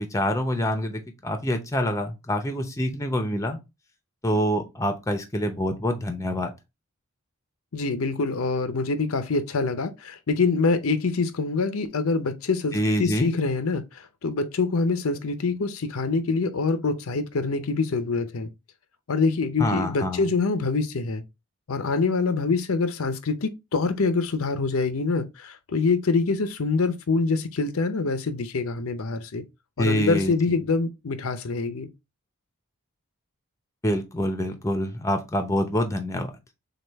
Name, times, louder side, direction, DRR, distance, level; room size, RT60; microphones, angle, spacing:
voice 1, 0.0-3.6 4.2-6.5 12.7-13.3 19.6-20.3 29.8-30.6 33.8-36.3, equal, 15° left, 0.7 m, -26 dB
voice 2, 7.7-18.5 19.1-21.2 21.7-29.4 29.8-31.9, left 4 dB, 80° left, 0.7 m, -25 dB
6.5 x 2.4 x 3.4 m
head